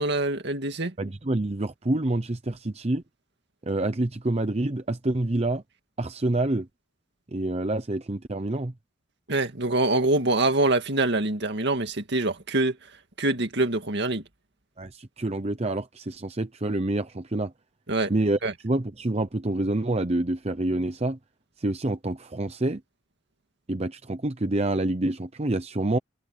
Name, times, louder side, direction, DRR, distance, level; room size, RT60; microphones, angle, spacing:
voice 1, 0.0-0.9 9.3-12.8 13.2-14.2 17.9-18.1 18.4-18.5, right 2 dB, 60° right, 2.2 m, -24 dB
voice 2, 1.0-3.0 3.6-5.6 6.0-6.7 7.3-8.7 14.8-17.5 18.1-18.4 18.6-21.2 21.6-22.8 23.7-26.0, right 2 dB, 30° right, 0.9 m, -27 dB
head